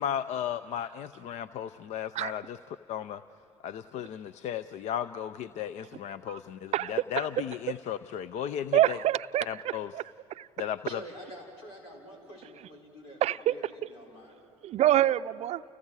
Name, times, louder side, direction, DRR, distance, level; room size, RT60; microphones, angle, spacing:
voice 1, 0.0-2.6 2.9-3.2 3.6-9.0 9.5-9.9 10.6-11.0, left 9 dB, 55° left, 14 dB, 0.5 m, -35 dB
voice 2, 8.7-9.6 9.9-10.0 10.4-10.5 13.2-13.5 14.6-15.6, right 12 dB, 50° right, 14 dB, 0.5 m, -26 dB
voice 3, 10.8-13.2 13.5-14.4, equal, 85° left, -1 dB, 5.3 m, -47 dB
30.0 x 30.0 x 4.8 m, 2.7 s
hypercardioid pair, 70°, 14 cm